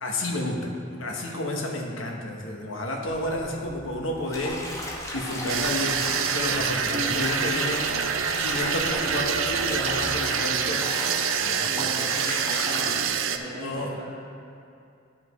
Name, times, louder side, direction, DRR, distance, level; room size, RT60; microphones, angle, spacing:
voice 1, 0.0-4.6 5.1-6.0 6.3-7.9 8.4-10.9 11.4-12.3 13.6-13.9, left 1 dB, 75° left, 0 dB, 1.0 m, -31 dB
sound 1, 3.0-10.2, equal, 10° right, 0.7 m, -46 dB
Bathtub (filling or washing), 4.3-13.0, left 1 dB, 15° left, 0.9 m, -35 dB
voice 2, 5.4-5.8 6.9-7.1 11.6-14.0, right 1 dB, 45° right, -10 dB, 1.4 m, -37 dB
sound 2, 5.5-13.4, right 7 dB, 75° right, 0.4 m, -26 dB
11.5 x 5.8 x 3.1 m, 2.5 s
head